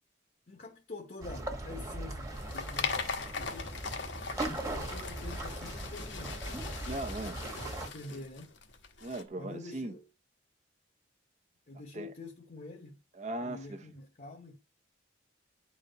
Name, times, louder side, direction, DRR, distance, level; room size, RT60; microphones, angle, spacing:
voice 1, 0.5-3.8 4.7-6.4 7.8-8.6 9.4-10.1 11.7-13.0 13.4-14.6, left 2 dB, 45° left, 0.9 m, -46 dB
sound 1, 1.2-7.9, right 2 dB, 20° right, 1.2 m, -39 dB
sound 2, 2.1-9.2, left 5 dB, 80° left, 1.2 m, -40 dB
voice 2, 6.9-7.4 8.1-8.2 9.0-9.9 11.9-12.1 13.2-13.8, right 1 dB, 40° right, 0.6 m, -38 dB
10.0 x 4.1 x 3.9 m
head